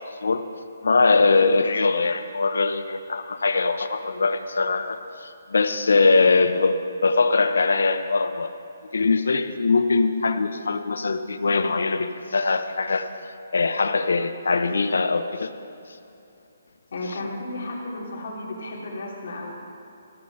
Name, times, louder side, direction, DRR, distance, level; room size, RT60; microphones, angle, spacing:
voice 1, 0.8-6.8 7.0-8.5 8.9-13.1 13.5-15.5, left 3 dB, 90° left, 10 dB, 0.7 m, -22 dB
voice 2, 16.9-19.5, left 2 dB, 55° left, -3 dB, 2.8 m, -33 dB
14.0 x 5.6 x 7.8 m, 2.7 s
hypercardioid pair, 170°, 0 cm